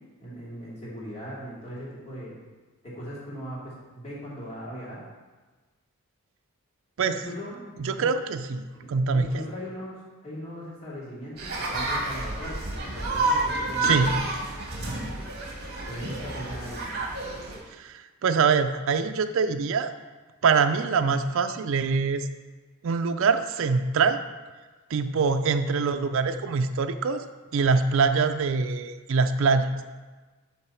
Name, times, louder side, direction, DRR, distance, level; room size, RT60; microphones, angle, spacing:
voice 1, 0.2-2.4 2.8-5.0 7.0-7.6 8.0-8.1 8.7-14.1 15.8-16.9, equal, 30° left, -7 dB, 2.7 m, -39 dB
voice 2, 7.8-9.4 13.8-14.1 17.8-19.9 20.4-22.3 22.8-24.2 24.9-27.2 27.5-29.7, right 5 dB, 70° right, 8 dB, 0.4 m, -24 dB
sound 1, 11.4-17.6, right 2 dB, 50° right, 1.5 m, -29 dB
11.5 x 3.9 x 4.4 m, 1.3 s
head